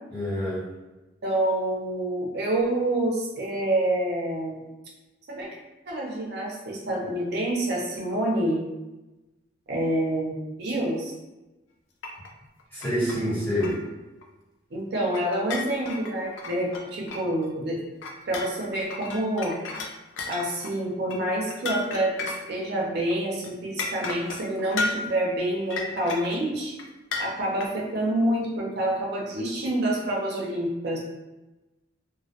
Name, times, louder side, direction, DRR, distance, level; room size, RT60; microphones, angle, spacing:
voice 1, 0.1-0.7 12.7-13.8, equal, 10° left, -10 dB, 1.0 m, -27 dB
voice 2, 1.2-4.6 5.3-5.6 5.9-8.7 9.7-11.1 14.7-17.8 18.3-19.6 20.3-26.7 27.2-31.0, right 1 dB, 60° right, -3 dB, 0.5 m, -27 dB
sound 1, 12.0-12.3 12.6-13.2 13.6-13.9 14.2-14.3 15.1-17.5 18.0-22.8 23.1-23.2 23.4-23.5 23.8-25.1 25.7-26.4 26.8-26.9 27.1-27.7, left 3 dB, 85° left, 0.4 m, -33 dB
2.2 x 2.1 x 2.7 m, 1.1 s
head